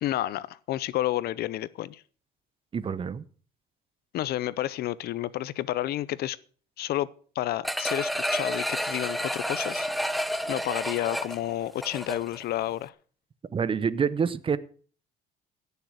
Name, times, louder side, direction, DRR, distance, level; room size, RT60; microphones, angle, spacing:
voice 1, 0.0-2.0 4.1-6.4 6.8-7.1 7.3-12.9, left 14 dB, 70° left, 0.7 m, -30 dB
voice 2, 2.7-3.2 13.5-14.6, right 6 dB, 30° right, 0.9 m, -27 dB
sound 1, 7.6-12.4 12.8-12.9, equal, ahead, 0.8 m, -30 dB
16.5 x 6.9 x 6.4 m
cardioid pair, 110°, 17 cm